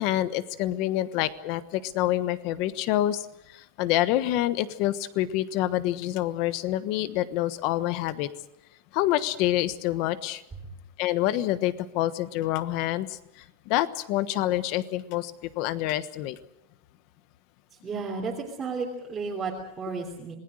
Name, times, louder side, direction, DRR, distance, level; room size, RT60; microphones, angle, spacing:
voice 1, 0.0-8.3 8.9-10.4 11.0-16.4, left 14 dB, 45° left, 14 dB, 1.2 m, -27 dB
voice 2, 17.7-20.3, right 4 dB, 15° right, -3 dB, 3.2 m, -33 dB
27.5 x 20.0 x 6.5 m, 0.84 s
supercardioid pair, 165°, 0 cm